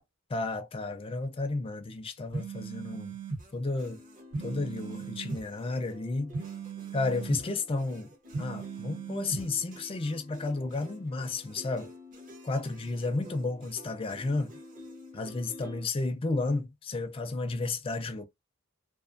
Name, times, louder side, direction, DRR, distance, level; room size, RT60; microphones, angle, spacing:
voice 1, 0.3-3.2 3.5-4.0 4.4-6.4 6.9-8.1 8.4-11.9 12.4-14.5 15.1-18.3, left 3 dB, 25° left, 0.4 m, -32 dB
sound 1, 2.3-3.4 4.3-5.4 6.3-7.4 8.3-9.4, right 4 dB, 65° right, 1.1 m, -37 dB
sound 2, 3.4-15.9, left 1 dB, 40° right, 0.8 m, -50 dB
2.4 x 2.4 x 2.5 m
head